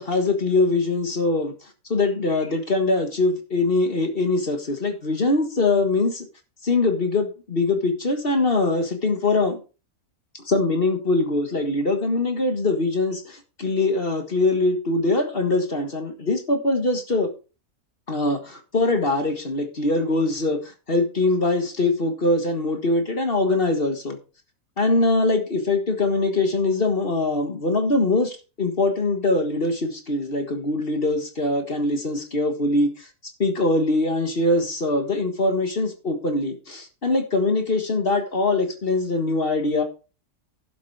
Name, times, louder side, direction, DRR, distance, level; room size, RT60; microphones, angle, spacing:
voice 1, 0.0-1.5 1.9-6.3 6.6-9.6 10.3-17.3 18.1-24.2 24.8-33.1 33.4-39.8, left 2 dB, 40° left, 6 dB, 1.7 m, -22 dB
11.5 x 7.4 x 4.7 m, 0.33 s
omnidirectional pair, 1.5 m